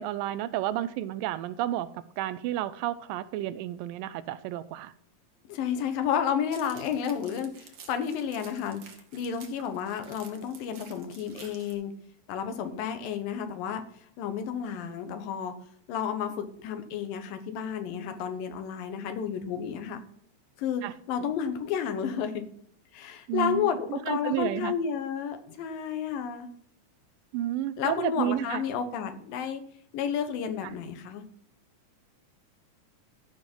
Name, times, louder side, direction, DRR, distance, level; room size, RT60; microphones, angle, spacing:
voice 1, 0.0-1.9 2.2-4.9 20.8-20.9 23.3-24.7 27.3-28.6, right 13 dB, 85° right, 14 dB, 2.3 m, -31 dB
voice 2, 5.5-8.8 9.1-11.9 12.3-13.8 14.2-15.5 15.9-20.0 20.6-22.4 22.9-26.5 27.8-29.6 29.9-31.2, left 8 dB, 85° left, 8 dB, 2.8 m, -31 dB
sound 1, 6.5-11.7, right 6 dB, 60° right, 1.5 m, -51 dB
13.5 x 5.7 x 4.5 m, 0.63 s
omnidirectional pair, 3.9 m